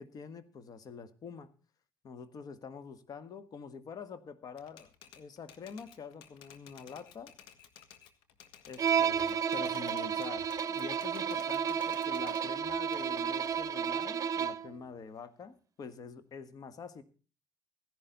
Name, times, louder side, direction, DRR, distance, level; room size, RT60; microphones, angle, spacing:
voice 1, 0.0-1.5 2.0-4.9 5.2-7.3 8.7-17.0, left 5 dB, 50° left, 13 dB, 1.6 m, -46 dB
Typewriter, 4.6-8.9 9.2-12.5 12.9-14.6, left 9 dB, 80° left, 1.6 m, -56 dB
Bowed string instrument, 8.8-14.7, right 7 dB, 45° right, 0.8 m, -32 dB
16.0 x 11.5 x 3.9 m, 0.36 s
supercardioid pair, 85°, 8 cm